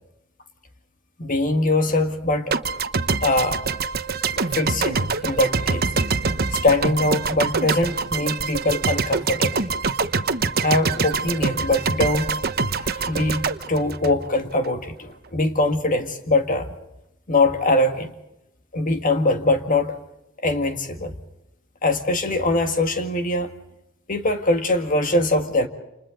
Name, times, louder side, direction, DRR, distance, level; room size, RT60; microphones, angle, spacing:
voice 1, 1.2-2.5 3.2-3.6 4.4-5.9 6.5-9.6 10.6-12.4 12.7-16.7 17.3-18.1 18.7-19.9 20.4-21.2 21.8-23.5 24.1-25.7, left 2 dB, 40° left, 6 dB, 1.9 m, -22 dB
sound 1, 2.5-14.7, right 4 dB, 50° right, 1.0 m, -25 dB
29.0 x 27.5 x 3.9 m, 0.89 s
head